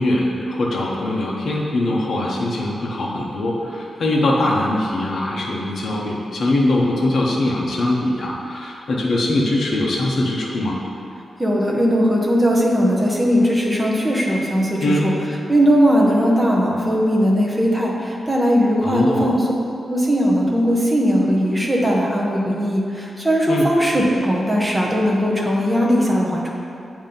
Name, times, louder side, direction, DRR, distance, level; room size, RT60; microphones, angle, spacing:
voice 1, 0.0-10.8 14.8-15.1 18.8-19.3 23.5-23.7, left 1 dB, 50° left, -3 dB, 0.7 m, -21 dB
voice 2, 11.4-15.1 15.5-19.5 19.9-26.5, equal, 5° right, -3 dB, 0.7 m, -18 dB
7.3 x 2.6 x 5.1 m, 2.6 s
wide cardioid pair, 170°, 0 cm